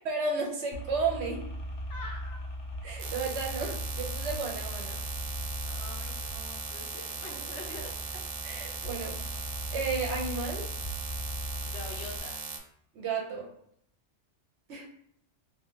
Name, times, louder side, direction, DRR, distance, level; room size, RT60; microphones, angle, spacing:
voice 1, 0.0-1.4 2.8-5.0 8.4-9.4 9.7-10.6 12.9-13.4 14.7-14.9, right 4 dB, 65° right, -1 dB, 0.9 m, -33 dB
sound 1, 0.7-12.2, equal, 35° left, 0.4 m, -39 dB
voice 2, 1.9-2.4 5.6-7.9 11.6-12.4, left 3 dB, 65° left, 1 dB, 0.9 m, -45 dB
sound 2, 3.0-12.6, right 5 dB, 90° right, 1.0 m, -39 dB
2.4 x 2.3 x 3.6 m, 0.72 s
omnidirectional pair, 1.3 m